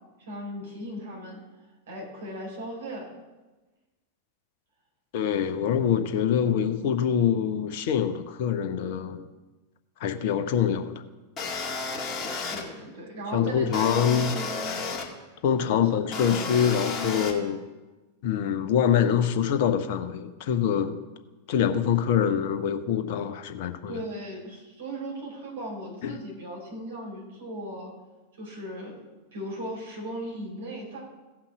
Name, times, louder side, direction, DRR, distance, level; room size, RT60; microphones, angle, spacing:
voice 1, 0.3-1.4 1.9-3.1 12.5-14.8 15.6-15.8 23.9-27.9 28.4-29.0 29.3-31.0, right 1 dB, 60° right, -2 dB, 4.4 m, -37 dB
voice 2, 5.1-9.2 10.0-10.9 13.3-14.3 15.4-17.6 18.2-21.0 21.5-24.0 26.0-26.2, left 8 dB, 50° left, 9 dB, 0.9 m, -25 dB
sound 1, 11.4-12.6 13.7-15.1 16.1-17.3, left 4 dB, 25° left, 2.0 m, -32 dB
16.0 x 5.8 x 6.0 m, 1.2 s
figure-of-eight pair, 90°, 0 cm